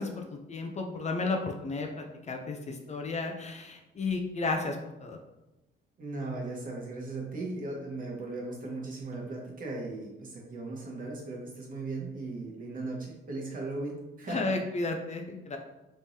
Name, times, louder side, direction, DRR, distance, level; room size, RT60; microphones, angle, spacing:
voice 1, 0.0-5.2 14.3-15.6, left 3 dB, 35° left, 3 dB, 0.5 m, -33 dB
voice 2, 6.0-14.5, right 2 dB, 45° right, -2 dB, 1.1 m, -37 dB
3.5 x 3.1 x 2.7 m, 0.98 s
cardioid pair, 90°, 20 cm